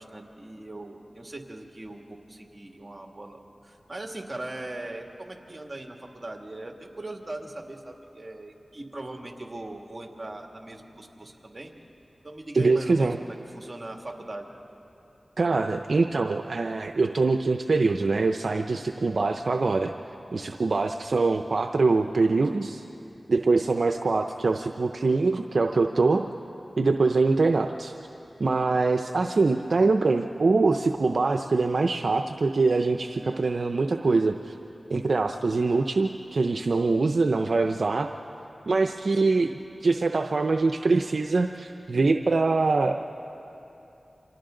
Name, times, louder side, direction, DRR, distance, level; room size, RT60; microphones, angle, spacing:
voice 1, 0.0-11.7 12.2-14.5 29.6-29.7 39.1-39.4, right 2 dB, 40° right, 2 dB, 2.3 m, -40 dB
voice 2, 12.5-13.2 15.4-19.9 20.3-22.8 23.3-26.3 26.8-27.9 28.4-34.5 34.9-38.1 38.7-39.5 39.8-43.1, right 3 dB, 75° right, 5 dB, 0.6 m, -23 dB
29.0 x 25.5 x 3.9 m, 2.9 s
cardioid pair, 45°, 0 cm